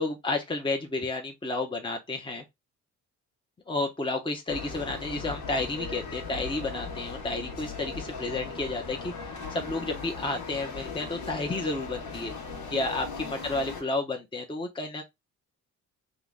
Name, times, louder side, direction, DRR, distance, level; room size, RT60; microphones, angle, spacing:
voice 1, 0.0-2.4 3.7-12.4 12.7-15.0, left 2 dB, 15° left, 0.8 m, -31 dB
sound 1, 4.5-13.8, left 4 dB, 85° left, 1.6 m, -38 dB
3.8 x 3.1 x 3.6 m
cardioid pair, 90°, 30 cm